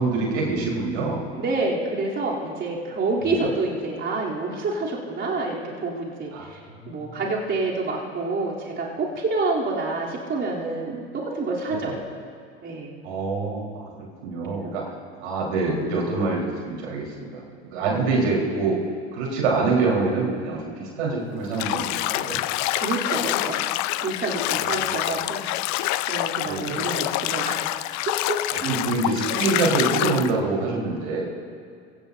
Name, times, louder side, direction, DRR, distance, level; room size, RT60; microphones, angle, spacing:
voice 1, 0.0-1.2 3.2-3.5 6.3-7.2 11.7-12.0 13.0-13.9 14.2-14.8 15.2-17.4 17.7-18.8 19.1-21.9 22.1-22.4 24.5-25.0 26.5-26.8 28.5-31.3, right 3 dB, 80° right, -3 dB, 4.5 m, -26 dB
voice 2, 1.4-6.6 6.9-11.0 11.3-11.9 12.6-12.9 14.5-14.8 17.8-18.1 22.8-23.6 24.0-25.5 26.1-27.6 28.1-28.9, right 3 dB, 35° right, -5 dB, 3.5 m, -28 dB
Bathtub (filling or washing), 21.5-30.3, left 16 dB, 55° left, 0.6 m, -26 dB
25.5 x 16.5 x 2.8 m, 2.3 s
hypercardioid pair, 85°, 34 cm